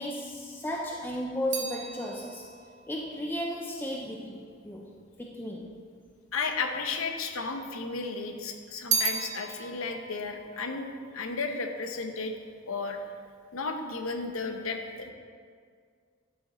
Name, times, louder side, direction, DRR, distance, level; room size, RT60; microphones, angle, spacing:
voice 1, 0.0-2.4 2.9-4.9 5.2-5.7, equal, 10° left, -1 dB, 0.5 m, -34 dB
sound 1, 0.5-5.0 5.8-6.6 6.8-8.0 8.3-11.8 12.1-12.6, right 6 dB, 35° right, 0.8 m, -36 dB
voice 2, 6.3-12.3 12.7-13.0 13.5-15.1, left 4 dB, 85° left, 5 dB, 0.9 m, -33 dB
11.5 x 5.8 x 4.2 m, 2.1 s
head